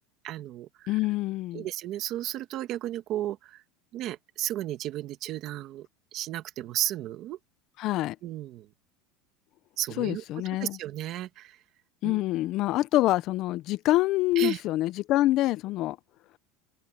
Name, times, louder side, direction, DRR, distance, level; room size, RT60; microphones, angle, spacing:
voice 1, 0.2-1.0 1.5-3.6 3.9-5.9 6.1-7.4 8.2-8.7 9.8-11.6 12.0-12.2 14.4-14.6, right 13 dB, 40° right, 1.8 m, -34 dB
voice 2, 0.9-1.7 7.8-8.2 10.0-10.8 12.0-16.0, left 16 dB, 40° left, 0.4 m, -26 dB
supercardioid pair, 165°, 0 cm